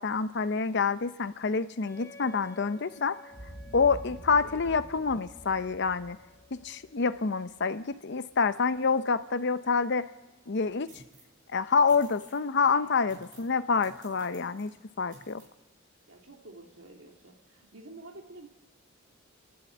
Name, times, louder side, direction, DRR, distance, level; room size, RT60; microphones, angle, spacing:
voice 1, 0.0-3.2 3.7-6.2 6.5-10.1 10.5-10.9 11.5-14.7 15.0-15.4, left 5 dB, 60° left, 13 dB, 0.7 m, -27 dB
Wind instrument woodwind instrument, 1.8-7.4, left 3 dB, 10° left, 4.9 m, -54 dB
Boom, 3.3-7.6, right 1 dB, 25° right, 3.9 m, -47 dB
sound 1, 10.9-11.4 11.9-12.4 13.1-13.6 13.8-14.7 15.1-15.5, right 2 dB, 45° right, 5.2 m, -55 dB
voice 2, 12.7-13.2 13.8-14.0 16.1-18.5, right 2 dB, 75° right, 1 dB, 2.5 m, -49 dB
29.5 x 11.0 x 8.1 m, 1.1 s
head